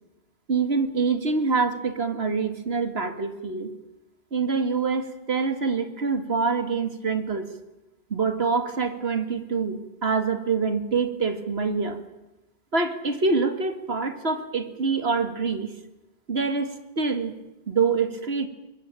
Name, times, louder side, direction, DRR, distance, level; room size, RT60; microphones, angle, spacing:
voice 1, 0.5-3.7 4.3-7.5 8.1-12.0 12.7-15.7 16.3-17.3 17.7-18.5, right 4 dB, 80° right, 8 dB, 2.4 m, -25 dB
23.0 x 22.0 x 9.0 m, 0.97 s
omnidirectional pair, 1.0 m